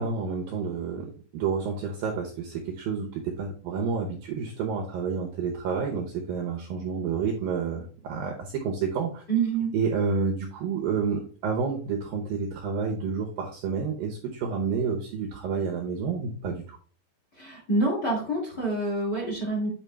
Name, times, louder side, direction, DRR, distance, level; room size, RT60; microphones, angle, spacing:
voice 1, 0.0-9.2 9.7-16.8, right 5 dB, 75° right, 2 dB, 2.2 m, -29 dB
voice 2, 9.3-9.7 17.3-19.7, right 3 dB, 25° left, -2 dB, 2.2 m, -27 dB
8.8 x 4.6 x 3.4 m, 0.42 s
omnidirectional pair, 5.1 m